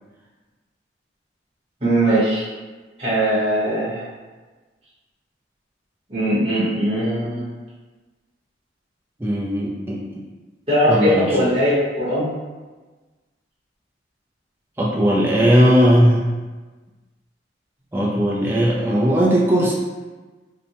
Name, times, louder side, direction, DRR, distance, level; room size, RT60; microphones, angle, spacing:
voice 1, 1.8-2.4 3.0-4.0 6.1-7.4 10.7-12.3, equal, 30° right, -12 dB, 0.9 m, -20 dB
voice 2, 9.2-10.0 10.9-11.3 14.8-16.3 17.9-19.7, equal, 10° right, -4 dB, 0.3 m, -17 dB
2.7 x 2.2 x 2.8 m, 1.3 s
head